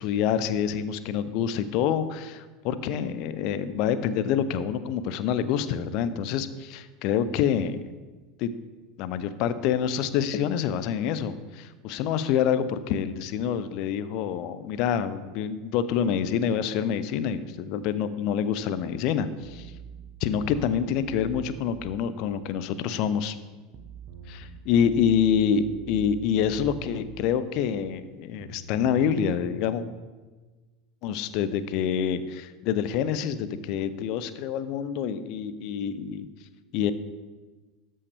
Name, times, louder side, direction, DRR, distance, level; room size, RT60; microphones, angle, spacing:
voice 1, 0.0-7.8 8.4-8.5 9.0-19.7 20.2-23.3 24.3-29.8 31.0-36.3 36.7-36.9, left 8 dB, 50° left, 14 dB, 0.5 m, -27 dB
sound 1, 19.4-22.0 23.7-27.4 28.4-30.1, right 5 dB, 40° right, 0.9 m, -44 dB
13.0 x 5.4 x 3.4 m, 1.3 s
figure-of-eight pair, 75°, 0 cm